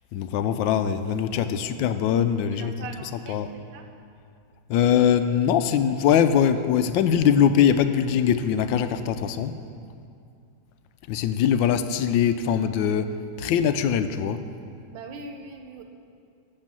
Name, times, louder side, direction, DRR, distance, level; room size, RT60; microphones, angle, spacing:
voice 1, 0.1-2.7 3.3-3.5 4.7-9.6 11.1-14.4, left 8 dB, 85° left, 10 dB, 1.3 m, -22 dB
voice 2, 2.3-3.9 14.9-15.8, right 3 dB, 85° right, 5 dB, 1.7 m, -41 dB
12.0 x 7.2 x 7.5 m, 2.4 s
omnidirectional pair, 2.0 m